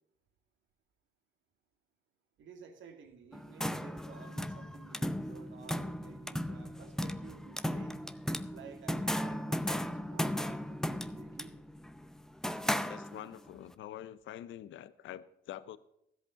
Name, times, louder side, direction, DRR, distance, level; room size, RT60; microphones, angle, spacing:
voice 1, 2.4-8.0 8.5-11.6, right 6 dB, 75° right, 6 dB, 2.1 m, -53 dB
sound 1, 3.3-13.5, equal, 5° left, 0.6 m, -36 dB
voice 2, 12.6-15.8, left 12 dB, 75° left, 15 dB, 0.7 m, -46 dB
13.5 x 8.1 x 5.7 m, 0.78 s
cardioid pair, 90°, 20 cm